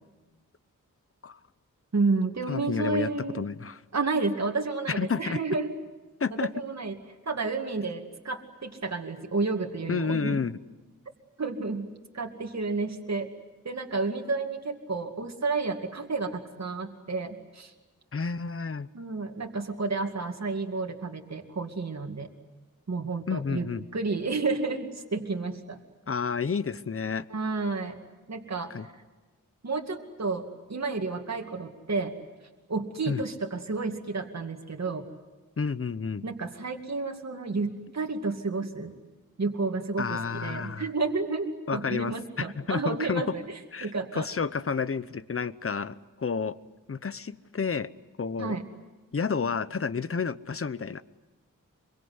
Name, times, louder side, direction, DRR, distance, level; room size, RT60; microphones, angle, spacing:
voice 1, 1.9-3.4 3.9-5.7 6.4-10.4 11.4-13.3 13.6-17.7 18.9-22.3 22.9-25.8 27.3-28.0 28.3-28.9 29.6-32.1 32.7-35.1 36.2-38.9 39.4-43.4 43.8-44.3 48.4-48.7, right 3 dB, 55° right, 2 dB, 2.3 m, -31 dB
voice 2, 2.5-3.8 4.9-5.4 6.2-6.5 9.9-10.6 18.1-18.9 23.3-23.9 26.1-27.3 28.7-28.9 33.1-33.2 35.6-36.2 40.0-40.9 41.7-43.4 43.7-46.6 46.9-47.9 48.2-48.6 49.1-51.0, left 5 dB, 40° left, 16 dB, 0.9 m, -30 dB
25.5 x 23.5 x 9.6 m, 1.2 s
wide cardioid pair, 80°, 33 cm